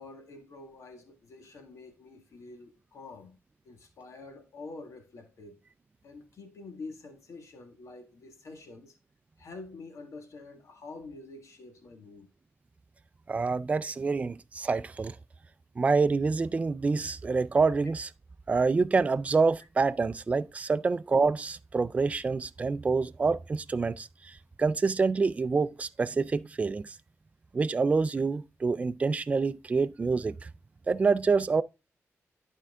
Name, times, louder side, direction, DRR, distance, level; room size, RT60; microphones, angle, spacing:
voice 1, 0.0-3.4 3.6-5.6 6.0-9.0 9.4-12.3, left 3 dB, 75° left, 1.7 m, -47 dB
voice 2, 13.3-15.2 15.8-18.1 18.5-26.9 27.5-30.5 30.9-31.6, right 4 dB, 25° right, 0.3 m, -27 dB
11.5 x 4.5 x 3.6 m
wide cardioid pair, 150°, 5 cm